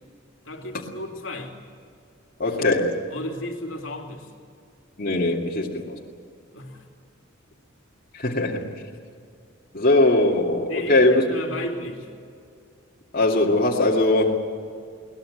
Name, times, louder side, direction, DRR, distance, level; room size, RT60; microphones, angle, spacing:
voice 1, 0.4-1.6 3.1-4.3 6.5-6.9 10.7-12.1, left 1 dB, 70° left, 2 dB, 2.8 m, -33 dB
voice 2, 2.4-2.9 5.0-6.0 8.1-8.6 9.7-11.2 13.1-14.3, left 2 dB, 45° left, -2 dB, 2.4 m, -20 dB
22.5 x 20.0 x 7.9 m, 2.3 s
head